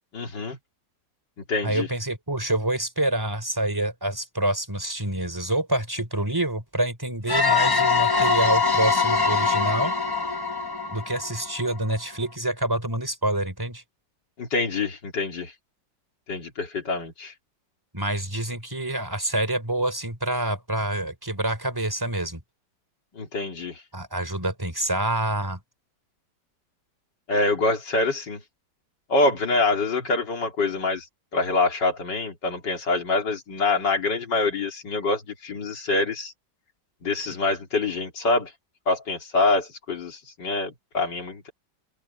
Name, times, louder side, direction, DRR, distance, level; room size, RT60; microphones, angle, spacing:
voice 1, 0.1-0.6 1.5-1.9 14.4-15.5 16.3-17.3 23.2-23.8 27.3-28.4 29.1-31.1 31.3-36.3 37.0-38.5 38.9-41.5, left 3 dB, 70° left, 3.5 m, -25 dB
voice 2, 1.6-10.0 10.9-13.8 17.9-22.4 23.9-25.6, right 1 dB, 10° right, 3.7 m, -27 dB
sound 1, 7.3-11.9, left 4 dB, 20° left, 0.6 m, -23 dB
open air
omnidirectional pair, 2.0 m